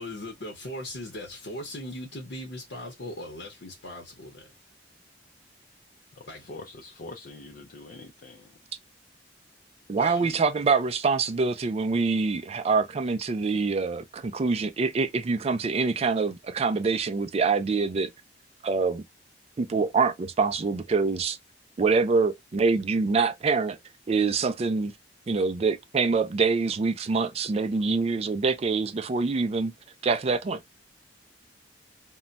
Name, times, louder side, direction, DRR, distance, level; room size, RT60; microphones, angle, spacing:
voice 1, 0.0-4.5 6.3-6.4 10.0-10.4, left 1 dB, 75° left, 0.8 m, -39 dB
voice 2, 6.1-8.6, left 2 dB, 55° left, 0.4 m, -44 dB
voice 3, 9.9-18.1 18.6-19.0 19.6-21.4 21.8-23.8 24.1-24.9 25.3-29.7 30.0-30.6, right 4 dB, 35° right, 0.3 m, -25 dB
2.2 x 2.1 x 3.8 m
head